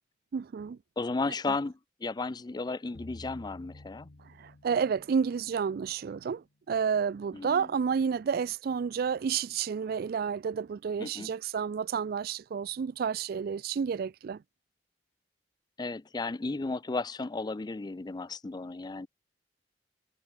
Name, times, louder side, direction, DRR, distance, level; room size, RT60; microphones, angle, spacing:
voice 1, 0.3-0.8 1.5-1.6 4.4-14.4, right 6 dB, 60° right, 0.3 m, -30 dB
voice 2, 1.0-4.1 7.3-7.7 11.0-11.3 15.8-19.1, left 3 dB, 25° left, 0.4 m, -34 dB
sound 1, 2.9-6.1, left 2 dB, 80° left, 1.2 m, -51 dB
head